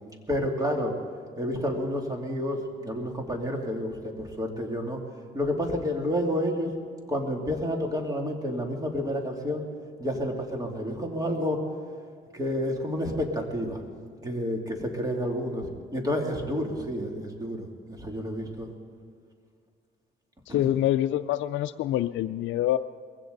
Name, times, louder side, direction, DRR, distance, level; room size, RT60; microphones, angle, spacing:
voice 1, 0.3-0.9 1.4-5.0 5.3-6.7 7.1-9.7 10.0-11.6 12.3-13.8 14.2-18.7 20.5-20.6, equal, 20° right, 1 dB, 2.8 m, -30 dB
voice 2, 20.5-22.8, left 13 dB, 75° left, 9 dB, 0.4 m, -26 dB
21.5 x 16.0 x 4.0 m, 2.1 s
cardioid pair, 90°, 20 cm